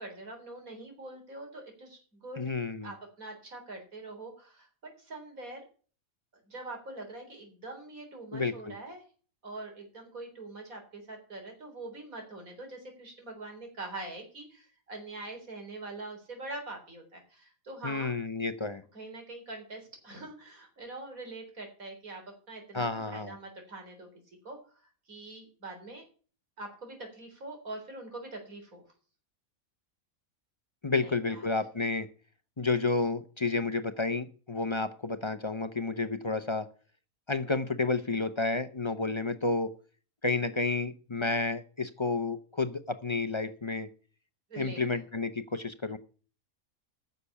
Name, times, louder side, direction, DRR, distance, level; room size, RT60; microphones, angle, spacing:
voice 1, 0.0-2.5 2.8-4.7 5.0-5.6 6.5-9.0 9.4-18.1 18.9-22.2 22.5-24.1 24.4-24.6 25.1-26.1 26.6-28.8 31.0-31.5 44.5-45.0, right 2 dB, 80° right, 3 dB, 4.3 m, -44 dB
voice 2, 2.4-2.9 8.3-8.8 17.8-18.8 22.7-23.3 30.8-32.1 32.6-36.7 37.3-39.7 40.2-43.9 44.6-46.0, left 3 dB, 30° left, 11 dB, 0.6 m, -31 dB
10.0 x 6.8 x 8.3 m, 0.39 s
omnidirectional pair, 1.4 m